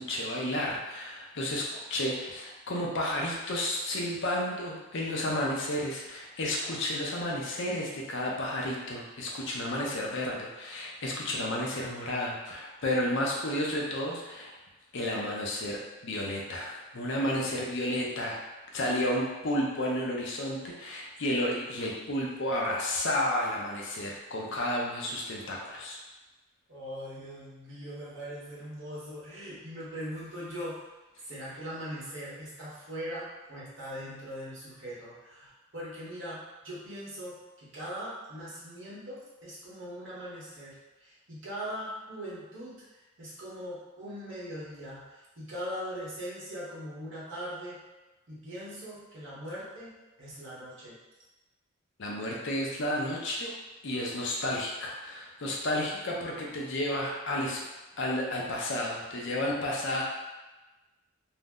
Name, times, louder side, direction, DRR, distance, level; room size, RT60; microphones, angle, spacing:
voice 1, 0.0-14.5 14.9-18.4 18.7-26.0 52.0-53.5 53.8-57.6 58.0-60.0, left 1 dB, 55° left, -2 dB, 0.5 m, -32 dB
voice 2, 26.7-30.9 31.2-42.8 43.2-45.0 45.4-47.8 48.3-49.9 50.2-50.9, equal, 55° right, -7 dB, 1.0 m, -40 dB
2.6 x 2.0 x 3.5 m, 1.1 s
head